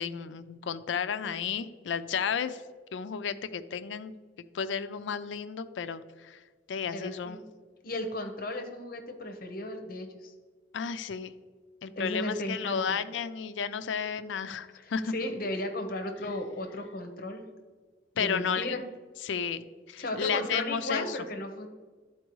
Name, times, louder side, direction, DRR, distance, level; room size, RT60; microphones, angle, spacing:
voice 1, 0.0-2.6 2.9-6.4 6.7-7.4 10.7-11.3 11.8-15.1 18.2-18.8 19.2-21.2, left 6 dB, 80° left, 12 dB, 0.4 m, -33 dB
voice 2, 6.9-7.4 7.8-10.3 12.0-13.0 14.8-17.4 18.1-18.8 20.0-21.7, left 1 dB, 50° left, 5 dB, 0.9 m, -35 dB
12.5 x 4.4 x 3.1 m, 1.5 s
head